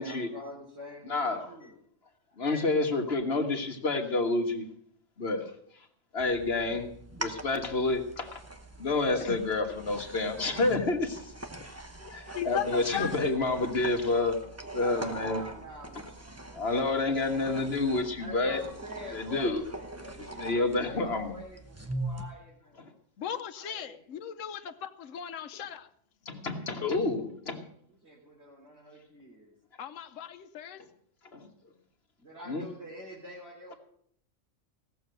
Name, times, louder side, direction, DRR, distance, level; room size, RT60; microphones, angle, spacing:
voice 1, 0.0-1.8 14.7-16.3 16.8-17.3 18.2-22.8 23.5-24.0 27.9-29.5 32.2-33.8, equal, 55° right, -6 dB, 3.9 m, -46 dB
voice 2, 1.0-1.5 2.4-4.6 5.2-5.5 6.1-6.9 7.2-8.4 8.8-11.3 12.1-14.4 14.7-15.4 16.5-18.6 19.1-19.7 20.2-21.3 22.8-22.9 26.2-27.6 31.3-31.5 32.5-32.6, left 3 dB, 50° left, 4 dB, 1.7 m, -29 dB
sound 1, 6.2-22.2, right 2 dB, 15° right, 0.9 m, -42 dB
voice 3, 12.0-13.2 23.2-25.9 29.8-30.8, left 9 dB, 70° left, 9 dB, 1.1 m, -37 dB
17.0 x 7.0 x 7.9 m, 0.66 s
omnidirectional pair, 1.4 m